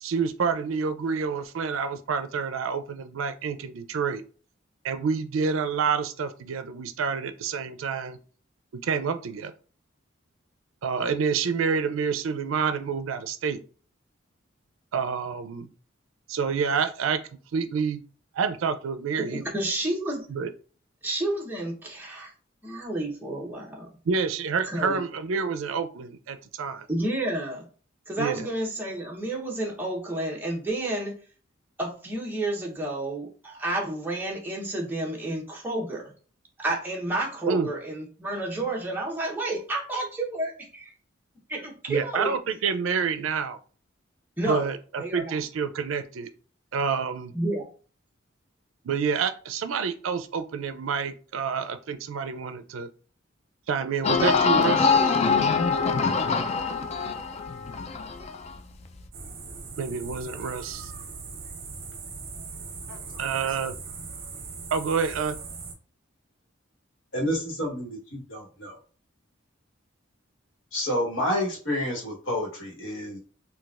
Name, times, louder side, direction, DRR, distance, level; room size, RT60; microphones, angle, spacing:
voice 1, 0.0-4.2 4.8-8.2 8.7-9.5 10.8-13.6 14.9-15.7 16.3-17.2 17.5-18.0 18.3-19.4 20.3-20.5 24.1-26.9 28.2-28.5 37.5-37.7 41.9-43.6 44.5-46.3 46.7-47.3 48.8-52.9 53.7-55.2 59.8-60.9 63.2-63.7 64.7-65.4, right 5 dB, 85° right, 11 dB, 0.4 m, -28 dB
voice 2, 19.2-20.3 21.0-22.3 22.6-23.9 24.6-25.0 26.9-27.7 28.1-31.2 31.8-36.1 36.6-40.9 41.5-42.3 44.4-44.7 45.0-45.3 47.3-47.7, right 1 dB, 10° right, -2 dB, 0.8 m, -30 dB
sound 1, 54.0-58.6 59.0-59.1, left 5 dB, 35° left, 0.3 m, -24 dB
sound 2, 59.1-65.7, right 4 dB, 50° right, 0.8 m, -40 dB
voice 3, 67.1-68.8 70.7-73.2, left 1 dB, 75° left, -2 dB, 1.2 m, -29 dB
3.9 x 2.3 x 2.4 m, 0.39 s
head